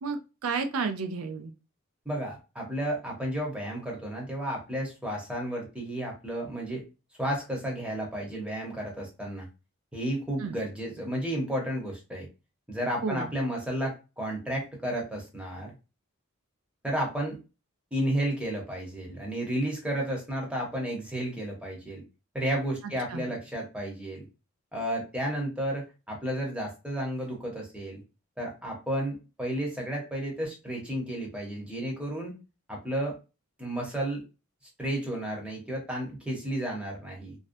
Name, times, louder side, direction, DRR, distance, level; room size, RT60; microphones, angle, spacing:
voice 1, 0.0-1.5 10.4-10.6 13.0-13.3 23.1-23.4, right 4 dB, 85° right, 8 dB, 0.4 m, -32 dB
voice 2, 2.1-6.8 7.2-9.5 9.9-12.3 12.7-15.7 16.8-17.4 17.9-22.0 22.3-24.2 24.7-28.0 28.4-32.4 32.7-33.2 33.6-34.2 34.8-37.4, right 1 dB, 5° right, -1 dB, 0.7 m, -32 dB
2.5 x 2.1 x 2.5 m, 0.29 s
head